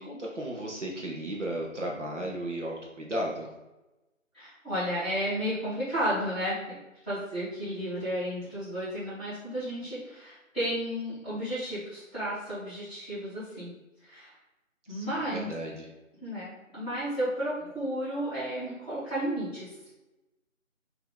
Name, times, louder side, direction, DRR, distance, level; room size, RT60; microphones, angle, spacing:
voice 1, 0.0-3.5 7.7-7.9 14.9-15.9, right 1 dB, 60° right, -2 dB, 0.9 m, -35 dB
voice 2, 4.3-6.8 7.0-13.7 14.0-14.3 14.9-15.5 16.2-19.7, equal, 10° right, -21 dB, 1.5 m, -33 dB
4.4 x 2.8 x 3.6 m, 1.0 s
figure-of-eight pair, 165°, 40 cm